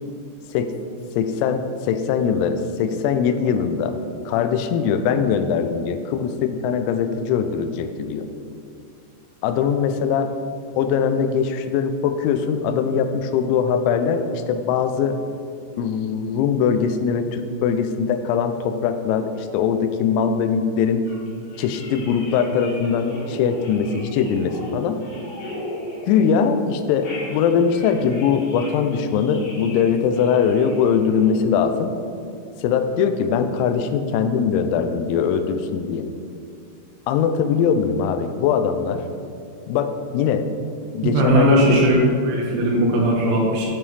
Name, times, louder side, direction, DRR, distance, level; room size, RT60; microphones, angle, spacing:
voice 1, 1.2-3.9 4.3-8.3 9.4-10.3 10.8-15.2 15.8-21.0 21.6-25.0 26.1-31.9 32.6-36.0 37.1-39.0 39.7-40.4 40.9-41.8, left 7 dB, 90° left, 8 dB, 3.3 m, -21 dB
sound 1, 21.1-26.6 26.9-31.9, equal, 70° left, 4.5 m, -35 dB
voice 2, 41.0-42.0 42.2-43.7, right 1 dB, 75° right, -2 dB, 3.2 m, -18 dB
10.5 x 5.4 x 3.2 m, 2.4 s
omnidirectional pair, 6.0 m